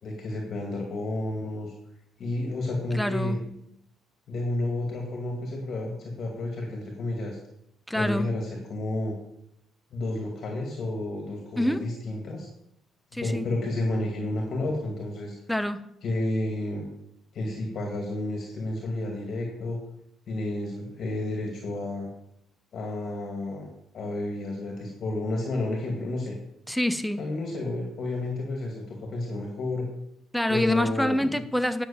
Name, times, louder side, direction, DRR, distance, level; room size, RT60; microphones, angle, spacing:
voice 1, 0.0-1.7 2.2-3.4 4.3-7.4 7.9-9.1 9.9-12.5 13.2-15.4 16.0-16.9 17.3-19.8 20.3-22.1 22.7-23.7 23.9-26.4 27.2-29.9 30.5-31.3, left 2 dB, 50° left, 1 dB, 2.0 m, -31 dB
voice 2, 2.9-3.4 7.9-8.3 11.6-11.8 13.1-13.5 15.5-15.9 26.7-27.3 30.3-31.8, left 1 dB, ahead, 10 dB, 0.6 m, -26 dB
9.8 x 6.1 x 6.9 m, 0.79 s
cardioid pair, 125°, 0 cm